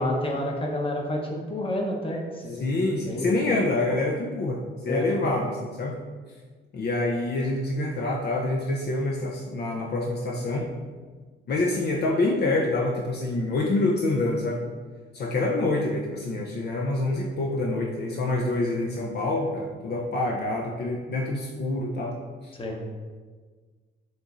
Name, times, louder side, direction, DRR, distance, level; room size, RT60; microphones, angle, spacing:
voice 1, 0.0-2.7 2.9-3.4 4.8-5.1 22.5-22.8, left 1 dB, 25° left, 0 dB, 0.9 m, -29 dB
voice 2, 2.6-6.0 6.7-10.7 11.5-14.6 15.1-22.2 22.4-22.5, left 2 dB, 55° left, -1 dB, 0.6 m, -26 dB
6.2 x 3.1 x 2.5 m, 1.4 s
cardioid pair, 90°, 20 cm